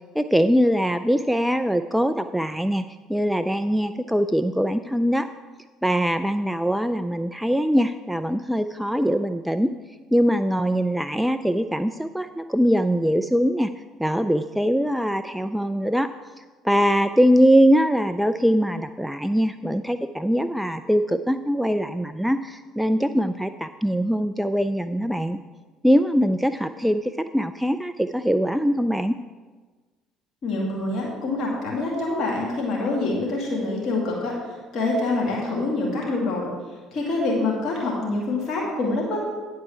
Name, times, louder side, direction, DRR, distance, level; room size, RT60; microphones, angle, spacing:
voice 1, 0.2-2.8 3.1-5.3 5.8-9.7 10.1-13.7 14.0-16.1 16.4-25.4 25.8-29.1, equal, 5° right, 10 dB, 0.3 m, -22 dB
voice 2, 30.4-36.5 36.9-39.2, left 2 dB, 55° left, -3 dB, 2.3 m, -26 dB
9.7 x 4.7 x 7.5 m, 1.4 s
hypercardioid pair, 55°, 0 cm